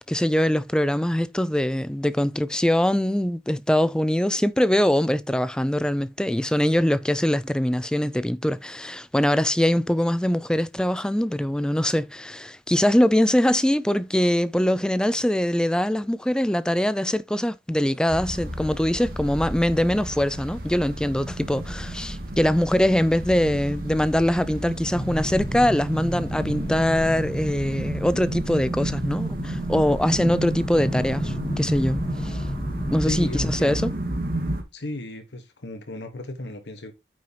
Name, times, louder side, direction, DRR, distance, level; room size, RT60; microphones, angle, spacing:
voice 1, 0.1-32.5 32.9-33.9, left 1 dB, 5° left, 0.4 m, -23 dB
sound 1, 18.1-34.6, right 1 dB, 55° right, 2.3 m, -32 dB
sound 2, 24.9-33.5, left 1 dB, 20° left, 1.5 m, -32 dB
voice 2, 33.0-33.8 34.7-36.9, left 1 dB, 90° left, 1.4 m, -34 dB
8.9 x 6.2 x 2.9 m
head